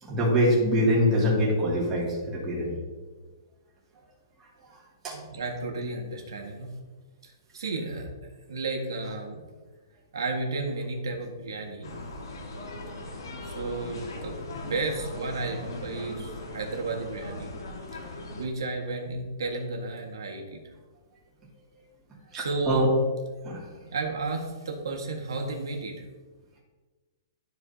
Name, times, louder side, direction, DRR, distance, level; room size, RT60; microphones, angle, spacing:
voice 1, 0.0-2.8 5.0-5.2 22.3-22.9 23.4-23.6, equal, 15° right, -7 dB, 2.5 m, -24 dB
voice 2, 5.1-6.7 7.2-8.1 8.5-9.5 10.1-11.9 13.4-17.5 18.4-20.6 22.3-22.9 23.9-25.9, right 3 dB, 90° right, 2 dB, 1.7 m, -33 dB
sound 1, 11.8-18.4, left 2 dB, 90° left, 1.8 m, -39 dB
13.0 x 4.8 x 2.8 m, 1.3 s
hypercardioid pair, 155°, 2 cm